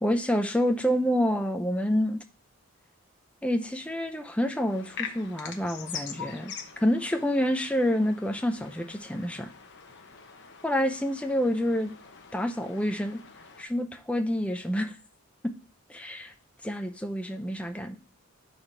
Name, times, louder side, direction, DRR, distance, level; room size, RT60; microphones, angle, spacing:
voice 1, 0.0-2.2 3.4-6.5 6.8-9.5 10.6-11.9 12.3-13.2 13.6-14.9 15.4-15.5 15.9-16.3 16.6-18.0, equal, 5° left, 6 dB, 0.6 m, -28 dB
sound 1, 4.7-13.6, left 7 dB, 55° left, 0.9 m, -44 dB
11.5 x 4.2 x 3.2 m, 0.36 s
head